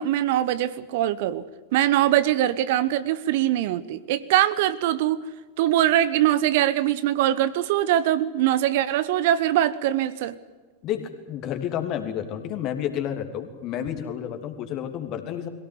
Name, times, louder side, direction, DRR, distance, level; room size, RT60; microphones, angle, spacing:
voice 1, 0.0-1.4 1.7-5.2 5.6-10.3, right 12 dB, 50° right, 15 dB, 1.0 m, -22 dB
voice 2, 10.8-15.5, left 9 dB, 35° left, 6 dB, 3.1 m, -30 dB
22.5 x 17.5 x 9.7 m, 1.3 s
figure-of-eight pair, 90°, 0 cm